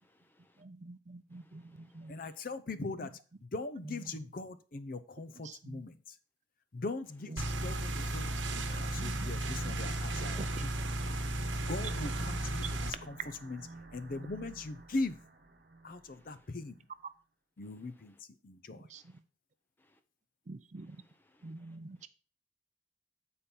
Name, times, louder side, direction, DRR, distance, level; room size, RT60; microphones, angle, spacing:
voice 1, 0.0-0.6 1.3-2.1 16.1-16.3 19.8-20.0 20.8-21.8 22.0-22.1, left 1 dB, 10° left, 8 dB, 0.7 m, -70 dB
voice 2, 0.6-2.1 5.4-5.8 8.7-9.7 10.1-10.5 18.9-19.0 20.5-21.0 21.4-22.1, right 2 dB, 40° right, 12 dB, 0.5 m, -47 dB
voice 3, 2.1-3.1 3.4-6.2 6.7-10.7 11.7-15.2 15.8-16.9 17.6-18.9, left 3 dB, 50° left, 11 dB, 0.6 m, -40 dB
sound 1, 7.4-12.9, right 1 dB, 80° right, 0.9 m, -34 dB
sound 2, 8.3-16.7, right 2 dB, 55° right, 1.0 m, -52 dB
8.4 x 4.4 x 5.3 m, 0.38 s
head